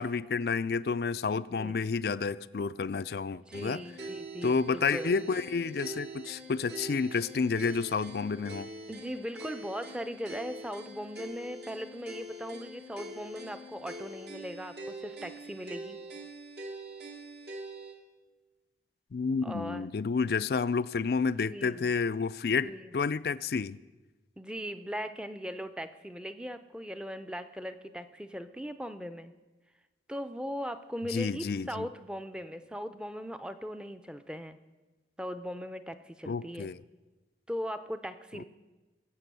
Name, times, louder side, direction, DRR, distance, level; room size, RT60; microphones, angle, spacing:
voice 1, 0.0-3.8 4.4-8.7 19.1-23.8 31.1-31.9 36.3-36.8 38.4-38.5, left 5 dB, 60° left, 0.4 m, -30 dB
voice 2, 3.3-5.1 8.9-16.0 19.4-19.9 21.5-21.9 22.6-22.9 24.4-29.3 30.1-34.6 35.2-36.7 37.5-38.4, equal, 5° right, 0.5 m, -39 dB
sound 1, 3.5-18.0, right 1 dB, 65° right, 2.1 m, -44 dB
22.0 x 7.8 x 6.8 m
head